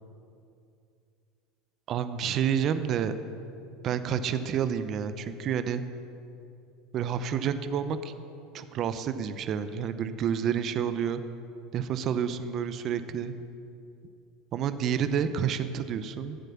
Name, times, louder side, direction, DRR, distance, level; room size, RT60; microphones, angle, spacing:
voice 1, 1.9-3.1 3.8-5.8 6.9-8.1 8.5-11.2 11.7-13.3 14.5-16.4, right 8 dB, 50° right, 11 dB, 0.8 m, -29 dB
13.5 x 8.0 x 7.2 m, 2.5 s
hypercardioid pair, 85°, 0 cm